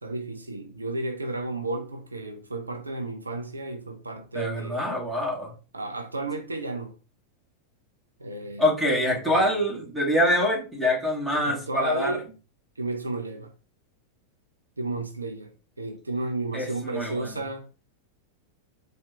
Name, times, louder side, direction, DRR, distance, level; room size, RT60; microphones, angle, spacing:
voice 1, 0.0-5.1 5.7-7.0 8.2-9.6 11.4-12.2 12.8-13.5 14.8-15.5 15.8-17.8, right 2 dB, 80° right, 0.6 m, -33 dB
voice 2, 4.3-5.5 8.6-12.2 16.5-17.3, left 1 dB, ahead, 2.0 m, -25 dB
4.3 x 2.7 x 3.3 m
figure-of-eight pair, 90°, 0 cm